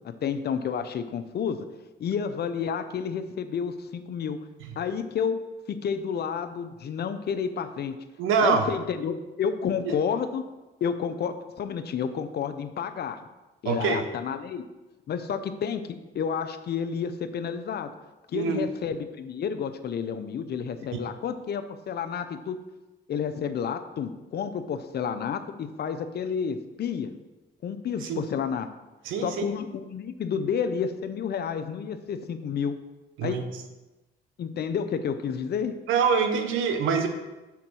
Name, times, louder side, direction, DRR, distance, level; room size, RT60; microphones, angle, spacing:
voice 1, 0.0-1.7 2.0-4.4 4.8-8.0 8.4-10.5 10.8-13.2 13.6-14.6 15.1-17.9 18.3-22.6 23.1-27.1 27.6-28.7 29.2-32.8 33.2-33.4 34.4-35.7, left 7 dB, 55° left, 9 dB, 0.6 m, -30 dB
voice 2, 8.2-8.7 9.8-9.9 13.6-14.0 18.3-18.7 20.9-21.0 28.0-28.3 29.0-29.5 33.2-33.4 35.9-37.1, right 6 dB, 90° right, 7 dB, 0.8 m, -25 dB
5.9 x 3.8 x 6.1 m, 1.1 s
cardioid pair, 90°, 20 cm